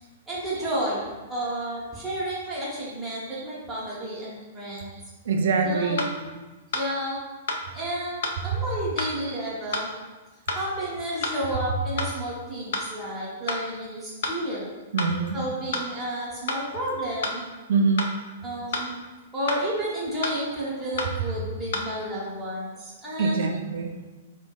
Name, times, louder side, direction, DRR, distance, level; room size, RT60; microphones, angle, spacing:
voice 1, 0.3-4.9 5.6-6.4 6.7-7.2 7.7-9.9 10.5-14.7 15.3-17.5 18.4-19.0 19.3-23.4, right 1 dB, 5° right, -9 dB, 0.8 m, -31 dB
sound 1, 5.3-5.4 6.0-6.1 6.7-6.9 7.5-7.6 8.2-8.4 9.0-9.1 9.7-9.9 10.5-10.6 11.2-11.4 12.0-12.1 12.7-12.9 13.5-13.6 14.2-14.4 15.0-15.1 15.7-15.9 16.5-16.6 17.2-17.4 18.0-18.1 18.7-18.9 19.5-19.6 20.2-20.4 21.0-21.1 21.7-21.9, left 3 dB, 55° left, 0.4 m, -28 dB
voice 2, 5.3-6.1 8.5-8.6 9.3-9.4 14.9-15.4 17.7-18.1 23.2-24.0, right 4 dB, 60° right, 4 dB, 0.3 m, -24 dB
4.4 x 2.2 x 2.3 m, 1.2 s
figure-of-eight pair, 105°, 0 cm